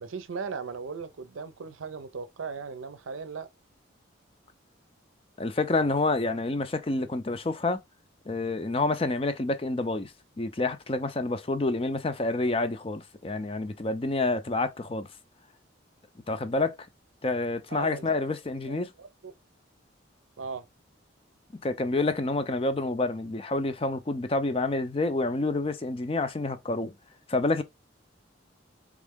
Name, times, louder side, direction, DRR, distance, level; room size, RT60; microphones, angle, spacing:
voice 1, 0.0-3.5 17.7-18.2 18.7-19.3 20.4-20.7, right 5 dB, 85° right, 0.6 m, -38 dB
voice 2, 5.4-7.8 8.3-15.1 16.3-16.8 17.2-18.9 21.6-26.9 27.3-27.6, left 2 dB, 30° left, 0.5 m, -28 dB
3.6 x 3.2 x 3.6 m
head